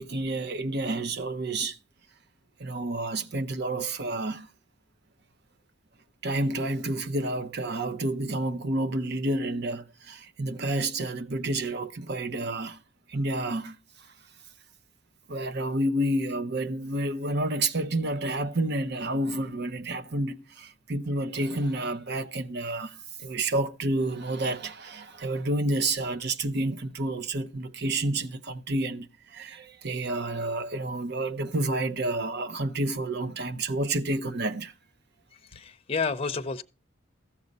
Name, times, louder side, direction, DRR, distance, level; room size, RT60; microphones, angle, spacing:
voice 1, 0.0-1.8 2.6-4.5 6.2-12.8 13.1-13.8 15.3-34.7, right 2 dB, 60° right, 0.9 m, -29 dB
voice 2, 35.3-36.6, left 4 dB, 30° left, 0.6 m, -31 dB
14.0 x 7.4 x 5.4 m
head